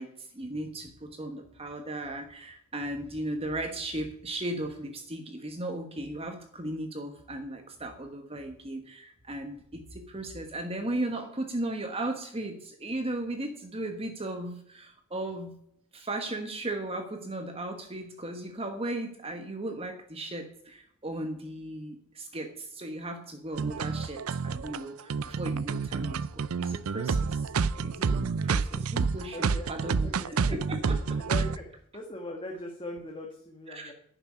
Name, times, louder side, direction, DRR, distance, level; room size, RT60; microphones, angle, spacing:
voice 1, 0.0-15.6 15.9-27.4 27.7-31.2 33.7-33.9, right 1 dB, 25° right, 5 dB, 1.3 m, -36 dB
sound 1, 23.6-31.6, right 5 dB, 75° right, 0.5 m, -29 dB
voice 2, 29.3-30.6 31.2-33.9, left 1 dB, 25° left, 1 dB, 1.7 m, -41 dB
11.5 x 7.0 x 9.7 m, 0.70 s
head